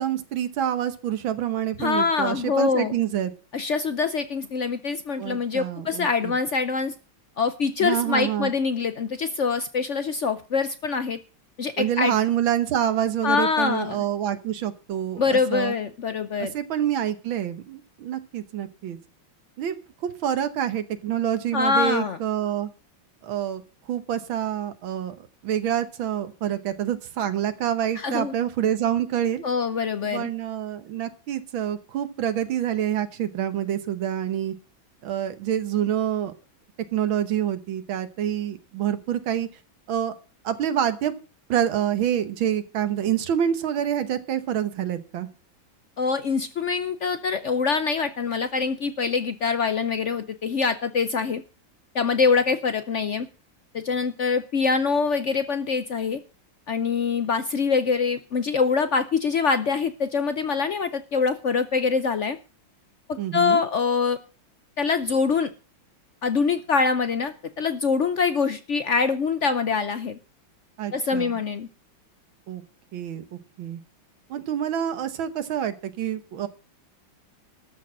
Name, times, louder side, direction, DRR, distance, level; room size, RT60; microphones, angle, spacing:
voice 1, 0.0-3.3 5.2-6.3 7.8-8.5 11.8-15.7 16.4-19.0 19.6-19.8 20.0-22.7 23.2-23.6 23.9-29.4 30.0-34.5 35.0-36.3 36.9-39.5 39.9-40.1 40.4-41.1 41.5-45.3 63.2-63.6 70.8-71.4 72.5-72.6 72.9-73.2 73.6-73.8 74.3-76.5, right 10 dB, 80° right, 10 dB, 1.8 m, -27 dB
voice 2, 1.8-2.9 3.5-6.9 7.4-11.2 11.6-12.1 13.2-14.0 15.2-16.5 21.5-22.2 28.0-28.3 29.4-30.3 46.0-51.4 51.9-53.3 53.7-56.2 56.7-62.4 63.1-64.2 64.8-65.5 66.2-70.2 70.9-71.7, left 5 dB, 70° left, 11 dB, 0.7 m, -24 dB
13.0 x 6.5 x 7.4 m, 0.35 s
omnidirectional pair, 2.2 m